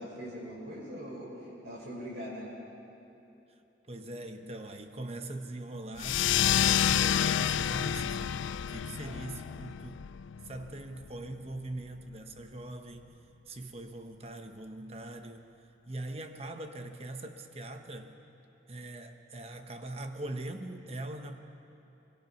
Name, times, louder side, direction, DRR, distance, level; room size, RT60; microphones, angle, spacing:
voice 1, 0.0-2.5 9.0-9.4, equal, 60° right, -4 dB, 6.3 m, -42 dB
voice 2, 3.9-10.1 10.4-13.1 13.5-15.5 15.9-18.2 18.7-21.4, right 2 dB, 30° right, 6 dB, 1.0 m, -42 dB
sound 1, 6.0-11.1, left 9 dB, 85° left, 0.4 m, -29 dB
23.0 x 21.0 x 5.9 m, 2.9 s
head